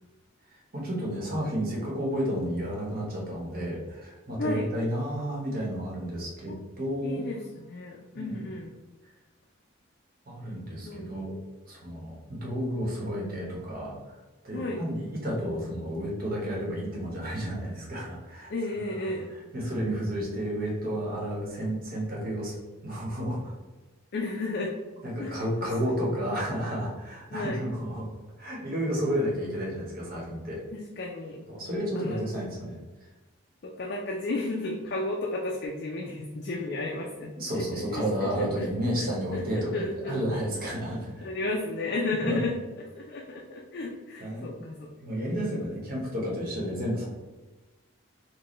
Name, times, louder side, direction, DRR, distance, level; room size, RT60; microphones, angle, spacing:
voice 1, 0.7-7.3 8.1-8.5 10.3-11.4 11.6-14.0 14.4-18.5 18.9-19.1 19.5-22.5 22.8-23.5 25.0-28.1 28.4-30.6 31.5-32.8 37.4-41.3 42.2-42.5 44.2-44.5 45.0-47.1, equal, 45° right, -3 dB, 1.0 m, -31 dB
voice 2, 7.0-8.7 10.8-11.1 14.5-14.8 18.5-19.3 24.1-24.7 25.2-25.4 27.3-27.6 30.7-31.4 32.0-32.2 33.6-37.6 37.9-38.7 39.0-40.2 41.2-42.6 43.0-45.2, left 2 dB, 55° left, -1 dB, 0.4 m, -33 dB
4.1 x 2.2 x 3.0 m, 1.2 s
head